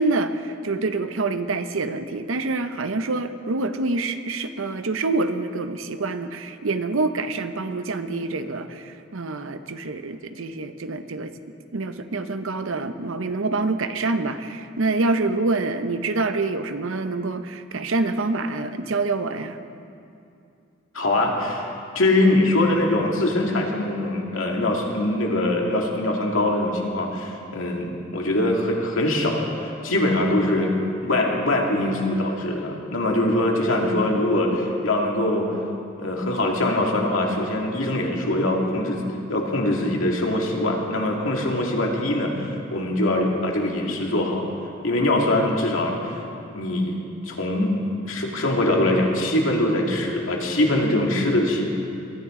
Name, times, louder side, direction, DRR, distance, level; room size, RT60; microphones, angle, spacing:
voice 1, 0.0-11.3 11.7-19.6, right 3 dB, 80° right, 10 dB, 0.7 m, -26 dB
voice 2, 20.9-21.7 21.9-30.7 31.0-35.5 36.0-39.0 39.3-44.4 44.8-46.0 46.5-47.0 47.2-47.8 48.1-51.7, left 1 dB, 85° left, 0 dB, 2.1 m, -23 dB
22.5 x 13.5 x 3.7 m, 2.6 s
head